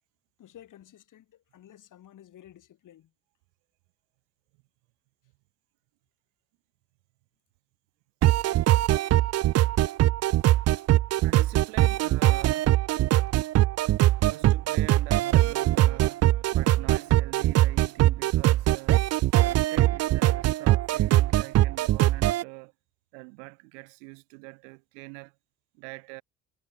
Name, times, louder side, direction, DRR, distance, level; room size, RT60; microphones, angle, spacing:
voice 1, 0.4-3.1, left 11 dB, 60° left, 7.5 m, -52 dB
sound 1, 8.2-22.4, right 14 dB, 45° right, 0.5 m, -22 dB
voice 2, 11.2-12.8 14.2-22.7 23.1-25.4 25.7-26.2, right 38 dB, 85° right, 5.0 m, -44 dB
hypercardioid pair, 70°, 36 cm